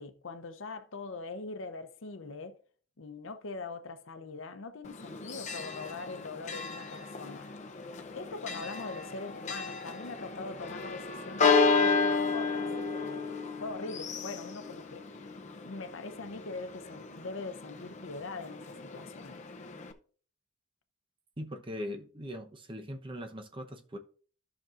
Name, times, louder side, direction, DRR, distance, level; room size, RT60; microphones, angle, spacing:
voice 1, 0.0-2.6 3.0-7.5 8.1-12.7 13.1-13.3 13.6-15.3 15.6-19.4, left 3 dB, 70° left, 0.7 m, -42 dB
Church bell, 4.9-19.9, left 4 dB, 35° left, 0.6 m, -33 dB
voice 2, 21.4-24.0, equal, 25° right, 0.9 m, -40 dB
13.5 x 6.0 x 2.5 m
head